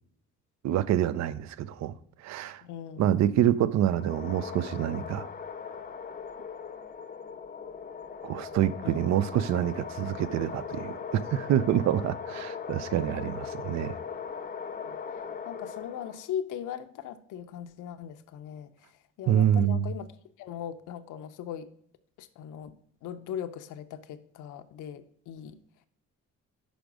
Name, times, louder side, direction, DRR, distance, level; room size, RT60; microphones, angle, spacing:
voice 1, 0.6-2.6 3.0-5.3 8.2-14.0 19.3-19.9, right 11 dB, 65° right, 0.5 m, -27 dB
voice 2, 2.6-3.4 8.8-9.1 13.1-13.3 14.9-15.0 15.4-21.7 22.2-22.7 23.0-25.6, left 9 dB, 85° left, 0.6 m, -39 dB
sound 1, 3.8-16.3, left 6 dB, 30° left, 0.6 m, -39 dB
5.1 x 5.1 x 6.0 m
cardioid pair, 90°, 30 cm